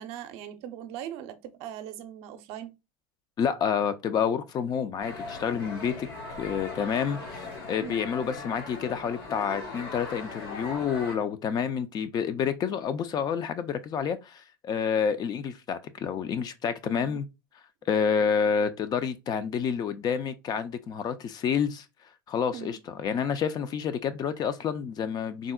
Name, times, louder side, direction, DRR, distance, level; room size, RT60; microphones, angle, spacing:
voice 1, 0.0-2.7 7.8-8.1 16.8-17.2 22.5-22.8, right 10 dB, 60° right, 0.5 m, -40 dB
voice 2, 3.4-6.1 6.4-17.3 17.9-21.8 22.3-25.5, left 7 dB, 35° left, 0.4 m, -29 dB
sound 1, 5.0-11.1, left 3 dB, 85° left, 1.2 m, -39 dB
3.6 x 2.0 x 2.2 m
supercardioid pair, 100°, 12 cm